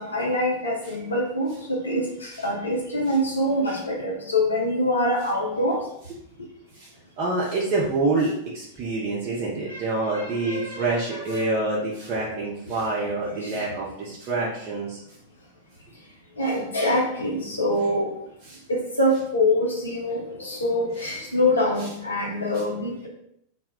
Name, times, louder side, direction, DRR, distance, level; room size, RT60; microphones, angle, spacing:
voice 1, 0.0-5.8 9.7-9.8 10.1-11.4 13.4-13.6 16.4-18.2 18.7-23.1, left 1 dB, 80° left, -3 dB, 0.6 m, -25 dB
voice 2, 7.2-15.0 18.5-18.6 21.8-21.9, right 2 dB, 35° right, -5 dB, 0.6 m, -27 dB
2.1 x 2.0 x 3.5 m, 0.73 s
figure-of-eight pair, 90°, 0 cm